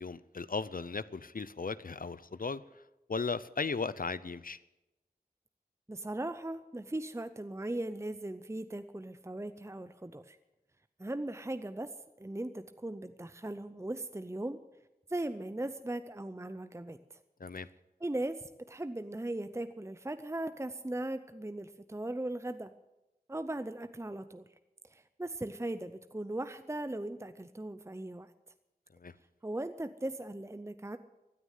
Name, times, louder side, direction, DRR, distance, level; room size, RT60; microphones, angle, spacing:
voice 1, 0.0-2.6 3.1-4.6 17.4-17.7 29.0-29.1, left 4 dB, 65° left, 16 dB, 0.6 m, -36 dB
voice 2, 5.9-10.4 11.0-14.6 15.1-17.2 18.0-22.7 23.3-24.4 24.8-28.3 29.4-31.0, right 1 dB, 15° right, 10 dB, 0.6 m, -38 dB
15.5 x 9.6 x 9.3 m, 0.99 s
wide cardioid pair, 50°, 16 cm